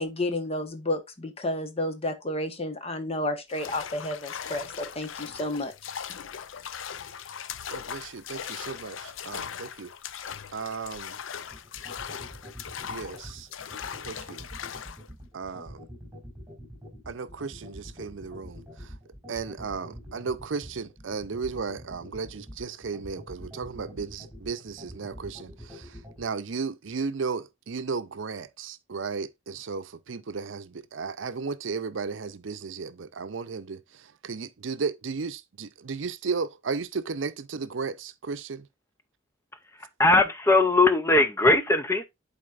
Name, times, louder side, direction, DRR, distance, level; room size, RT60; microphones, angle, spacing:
voice 1, 0.0-5.7, left 1 dB, 30° left, 1.1 m, -31 dB
sound 1, 3.5-15.1, left 8 dB, 80° left, 0.5 m, -39 dB
voice 2, 7.7-9.9 10.5-11.2 12.9-13.5 14.0-14.5 15.3-15.8 17.1-18.9 19.3-38.7, right 5 dB, 75° right, 0.6 m, -35 dB
sound 2, 11.5-26.2, equal, 10° right, 4.9 m, -44 dB
voice 3, 39.7-42.0, left 2 dB, 15° left, 0.6 m, -20 dB
11.0 x 4.3 x 2.5 m
head